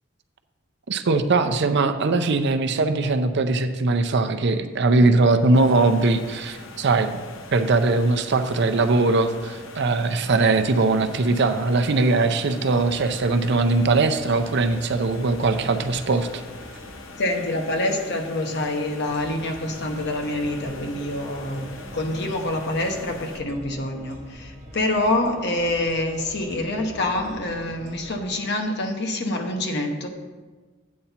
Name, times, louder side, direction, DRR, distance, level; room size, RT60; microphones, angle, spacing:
voice 1, 0.9-7.1 7.5-16.4, right 3 dB, 60° right, 8 dB, 0.6 m, -21 dB
sound 1, 5.5-23.4, left 3 dB, 80° left, 0.8 m, -42 dB
sound 2, 12.7-28.3, equal, 35° right, 1.8 m, -44 dB
voice 2, 17.2-30.1, left 1 dB, 60° left, 3 dB, 1.1 m, -26 dB
8.5 x 4.3 x 6.8 m, 1.3 s
head